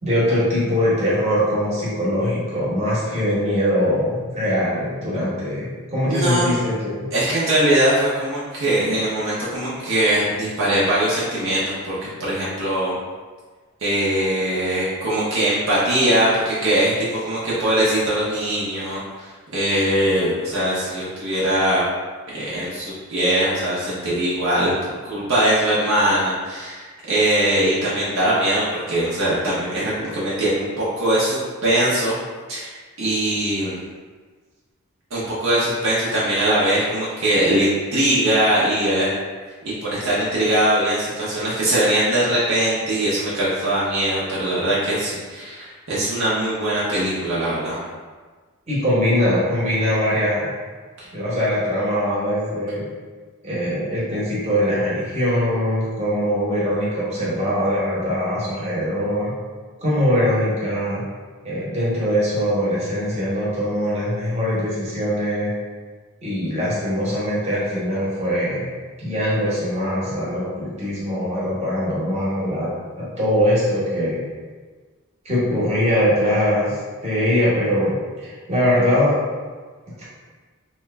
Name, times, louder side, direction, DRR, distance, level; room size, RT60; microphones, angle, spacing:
voice 1, 0.0-7.1 48.7-50.5 51.1-52.9 53.4-59.3 59.8-61.0 61.4-65.5 66.2-68.7 69.0-72.7 73.0-74.2 75.2-79.2 80.0-80.1, equal, 30° right, -9 dB, 1.1 m, -22 dB
voice 2, 6.1-6.5 7.1-13.0 13.8-21.9 22.3-24.7 25.0-32.1 32.5-33.8 35.1-39.1 39.8-47.8 51.0-51.1, right 1 dB, 65° right, -9 dB, 0.7 m, -21 dB
3.0 x 2.2 x 3.3 m, 1.4 s
head